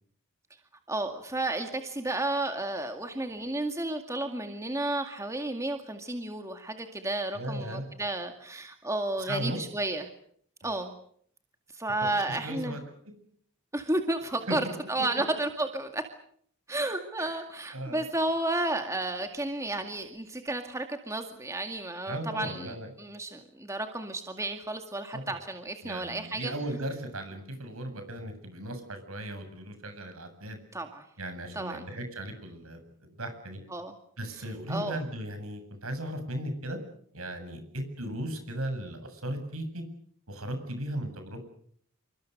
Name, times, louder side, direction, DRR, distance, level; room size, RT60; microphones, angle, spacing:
voice 1, 0.9-10.1 10.6-10.9 11.7-12.8 13.7-14.6 14.9-16.0 16.7-26.5 30.7-31.0 31.5-31.9 33.7-33.9 34.7-35.0, right 2 dB, 15° right, 5 dB, 2.1 m, -32 dB
voice 2, 7.3-7.8 9.3-9.6 10.6-10.7 12.3-12.8 14.5-14.6 17.2-17.4 17.7-18.0 22.1-22.9 25.1-25.4 25.8-30.6 31.2-33.6 34.2-36.8 37.1-39.8 40.3-41.5, right 1 dB, 75° right, 7 dB, 7.8 m, -36 dB
28.0 x 24.0 x 6.7 m, 0.64 s
head